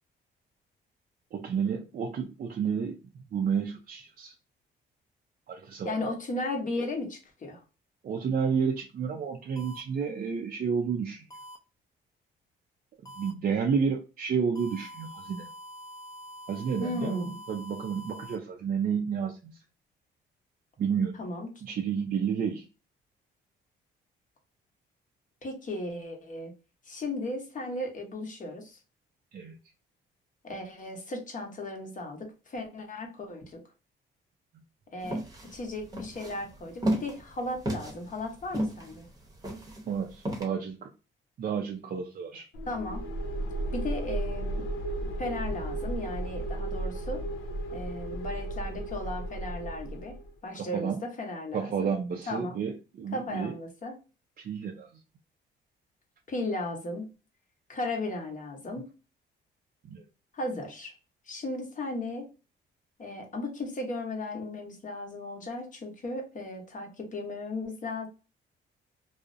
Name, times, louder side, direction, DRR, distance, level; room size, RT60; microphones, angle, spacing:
voice 1, 1.3-3.0 3.3-4.3 5.5-6.1 8.0-11.3 13.2-15.5 16.5-19.6 20.8-21.2 21.6-22.7 29.3-29.6 39.9-40.9 41.4-42.5 50.6-51.0 51.5-53.5 54.4-54.9 59.8-60.0, right 6 dB, 45° right, 2 dB, 0.4 m, -31 dB
voice 2, 5.8-7.6 16.8-17.4 21.2-21.5 25.4-26.5 26.9-28.8 30.4-33.6 34.9-35.2 35.5-39.1 42.7-43.0 43.7-44.7 45.2-47.2 47.7-50.2 50.4-51.9 52.3-52.6 53.1-54.0 56.3-57.0 57.7-58.9 60.3-60.9 61.3-62.3 63.0-68.1, left 2 dB, 40° left, 3 dB, 0.9 m, -36 dB
sound 1, 9.6-9.8 11.3-11.6 13.1-13.3 14.6-18.4, equal, 20° left, 0.5 m, -45 dB
sound 2, 35.0-40.4, right 1 dB, 20° right, 0.8 m, -33 dB
sound 3, 42.5-50.3, right 1 dB, 85° left, 0.5 m, -34 dB
2.4 x 2.0 x 2.5 m, 0.32 s
cardioid pair, 90°, 20 cm